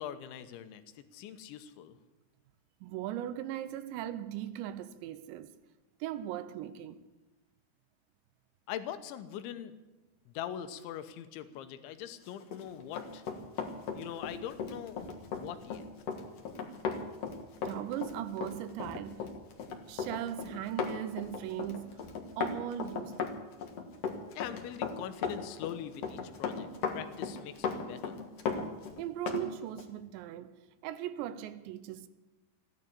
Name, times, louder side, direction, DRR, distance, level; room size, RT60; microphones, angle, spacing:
voice 1, 0.0-2.0 8.7-9.7 10.3-13.2 13.9-15.0 15.3-15.9 24.3-26.7 26.9-28.2, left 10 dB, 85° left, 3.3 m, -42 dB
voice 2, 2.8-5.5 6.0-7.0 17.7-19.3 19.9-22.0 22.4-23.4 29.0-32.1, right 11 dB, 80° right, 2.9 m, -38 dB
Run, 12.4-29.5 29.8-29.9, left 5 dB, 70° left, 1.5 m, -37 dB
15.0 x 11.5 x 8.4 m
omnidirectional pair, 5.2 m